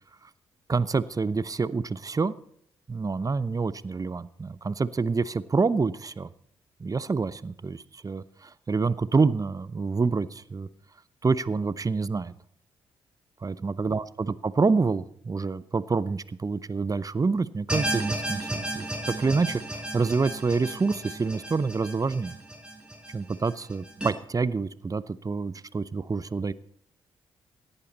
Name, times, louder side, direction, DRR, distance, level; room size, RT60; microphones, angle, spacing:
voice 1, 0.7-2.3 2.9-6.3 6.8-10.7 11.2-12.3 13.4-22.3 23.1-26.5, right 4 dB, 30° right, 17 dB, 0.8 m, -27 dB
sound 1, 17.7-24.1, right 1 dB, 10° right, 4.7 m, -34 dB
17.0 x 11.0 x 4.1 m, 0.68 s
hypercardioid pair, 45°, 12 cm